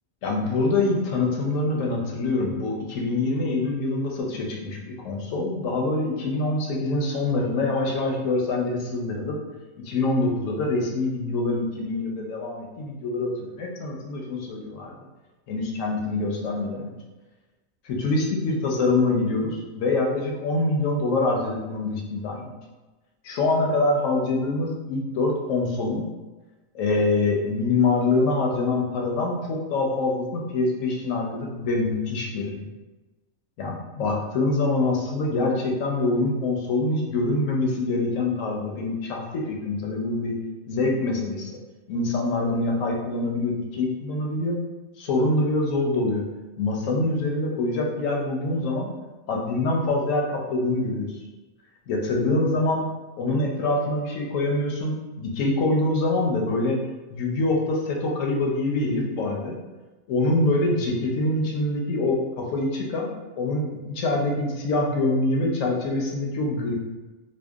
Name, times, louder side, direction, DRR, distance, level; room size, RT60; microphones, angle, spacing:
voice 1, 0.2-9.4 9.8-14.9 15.5-17.0 17.8-22.5 23.2-26.0 26.7-32.6 33.6-40.4 40.7-41.6 41.9-44.6 45.0-46.2 46.6-48.9 49.3-51.1 51.9-52.8 53.2-56.8 57.1-59.6 60.1-63.1 63.4-66.7, left 2 dB, 70° left, -1 dB, 0.9 m, -25 dB
2.7 x 2.2 x 2.3 m, 1.2 s
omnidirectional pair, 1.5 m